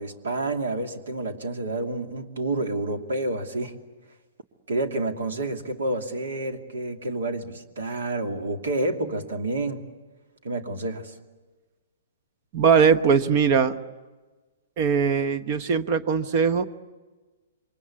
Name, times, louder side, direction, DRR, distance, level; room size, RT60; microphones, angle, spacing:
voice 1, 0.0-3.8 4.7-9.8 10.4-11.1, right 2 dB, 65° right, 6 dB, 2.6 m, -29 dB
voice 2, 12.5-13.8 14.8-16.6, right 6 dB, 40° right, 13 dB, 1.2 m, -20 dB
28.0 x 24.5 x 8.4 m, 1.3 s
figure-of-eight pair, 115°, 0 cm